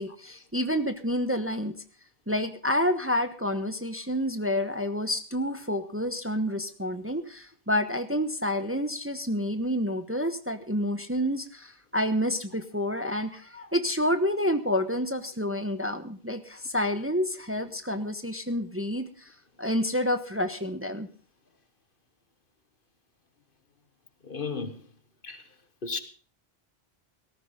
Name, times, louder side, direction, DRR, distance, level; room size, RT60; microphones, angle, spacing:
voice 1, 0.0-1.7 2.3-21.1, equal, 15° right, 1.1 m, -29 dB
voice 2, 24.2-24.8 25.2-25.4 25.8-26.0, left 4 dB, 55° left, 1.6 m, -33 dB
18.0 x 14.5 x 3.8 m
omnidirectional pair, 1.1 m